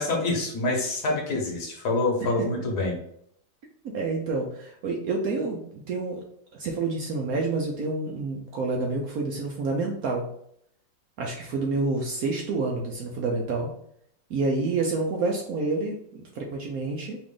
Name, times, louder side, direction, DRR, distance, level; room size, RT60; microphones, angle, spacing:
voice 1, 0.0-3.0, left 2 dB, 65° left, 0 dB, 1.4 m, -26 dB
voice 2, 2.2-2.6 3.9-6.2 6.5-10.3 11.2-13.7 14.3-17.2, right 3 dB, 65° right, 0 dB, 1.0 m, -28 dB
4.9 x 2.5 x 3.6 m, 0.70 s
omnidirectional pair, 2.0 m